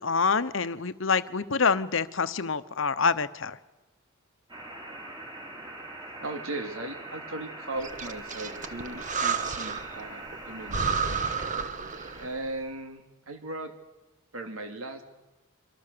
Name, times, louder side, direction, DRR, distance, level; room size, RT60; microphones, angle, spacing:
voice 1, 0.0-3.6, left 5 dB, 65° left, 14 dB, 1.0 m, -26 dB
sound 1, 4.5-12.3, right 2 dB, 20° right, 5.5 m, -43 dB
voice 2, 6.2-11.3 12.2-13.7 14.3-15.0, right 2 dB, 75° right, 5 dB, 2.6 m, -38 dB
Breathing, 7.8-10.0 10.3-10.4 10.7-12.4, right 5 dB, 35° right, 1.3 m, -31 dB
27.0 x 24.5 x 6.9 m, 1.0 s
head